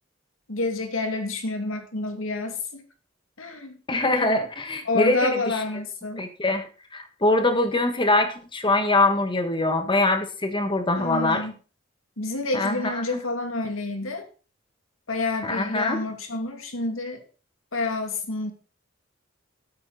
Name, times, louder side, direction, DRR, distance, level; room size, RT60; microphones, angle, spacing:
voice 1, 0.5-2.8 3.4-3.8 4.9-6.3 11.0-11.5 12.2-14.3 15.1-17.2 17.7-18.5, left 2 dB, 85° left, 5 dB, 2.5 m, -29 dB
voice 2, 3.9-5.6 6.2-11.4 12.5-13.0 15.4-16.0, left 2 dB, 25° left, 7 dB, 1.6 m, -23 dB
13.5 x 8.7 x 4.2 m, 0.37 s
head